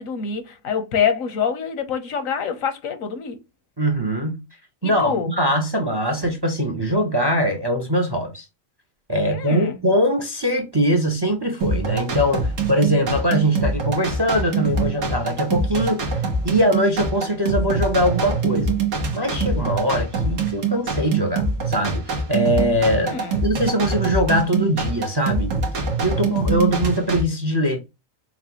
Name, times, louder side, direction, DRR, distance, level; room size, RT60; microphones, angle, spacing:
voice 1, 0.0-3.4 4.8-5.3 9.2-9.8 23.0-23.4, left 7 dB, 85° left, 1.3 m, -26 dB
voice 2, 3.8-4.4 4.8-8.4 9.1-16.2 16.4-18.7 19.1-23.2 23.4-25.5 26.0-27.8, equal, 25° right, 0.6 m, -22 dB
sound 1, 11.6-27.2, right 3 dB, 75° right, 1.5 m, -24 dB
5.8 x 2.3 x 2.8 m
omnidirectional pair, 1.4 m